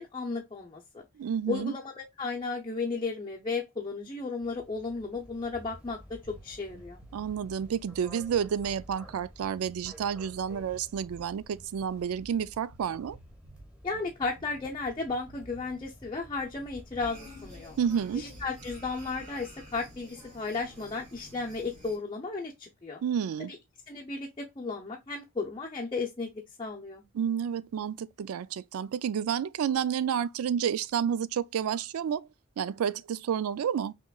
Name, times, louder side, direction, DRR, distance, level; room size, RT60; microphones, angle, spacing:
voice 1, 0.0-1.0 1.5-7.0 13.8-17.8 18.1-23.0 23.9-26.3 26.6-27.0, left 4 dB, 25° left, 0.6 m, -34 dB
voice 2, 1.2-1.7 7.1-13.2 17.8-18.3 23.0-23.5 27.1-32.3 32.6-33.9, right 8 dB, 85° right, 0.3 m, -30 dB
sound 1, 4.4-20.0, equal, 5° right, 1.1 m, -52 dB
Bass guitar, 6.2-15.8, right 2 dB, 60° right, 0.8 m, -54 dB
sound 2, 17.0-22.0, equal, 40° right, 2.3 m, -50 dB
5.7 x 3.0 x 2.3 m
head